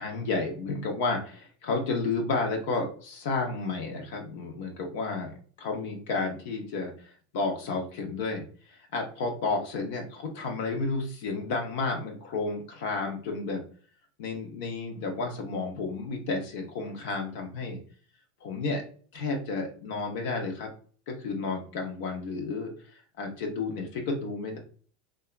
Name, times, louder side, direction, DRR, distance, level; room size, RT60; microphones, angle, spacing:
voice 1, 0.0-8.4 8.7-13.6 14.2-17.8 18.4-18.8 19.1-20.7 21.1-22.7 23.2-24.6, left 3 dB, 70° left, 2 dB, 0.7 m, -31 dB
2.8 x 2.3 x 2.3 m, 0.43 s
hypercardioid pair, 105°, 0 cm